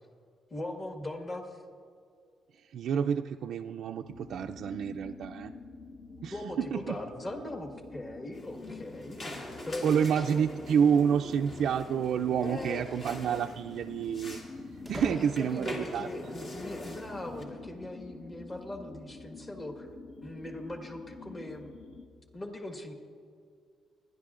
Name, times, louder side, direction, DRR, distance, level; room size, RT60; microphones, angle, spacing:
voice 1, 0.5-1.6 6.1-10.4 12.4-12.8 14.9-19.9 20.2-21.7 22.3-22.9, left 1 dB, 30° left, 3 dB, 1.5 m, -40 dB
voice 2, 2.7-5.5 6.2-7.0 9.8-14.4 14.9-16.1, right 7 dB, 70° right, 4 dB, 0.3 m, -29 dB
sound 1, 4.1-22.1, left 3 dB, 70° left, 1.1 m, -48 dB
sound 2, 8.3-17.4, left 1 dB, 55° left, 2.5 m, -43 dB
sound 3, 11.4-12.4 14.9-15.9, equal, ahead, 0.4 m, -46 dB
28.5 x 11.0 x 2.5 m, 2.3 s
cardioid pair, 90°, 0 cm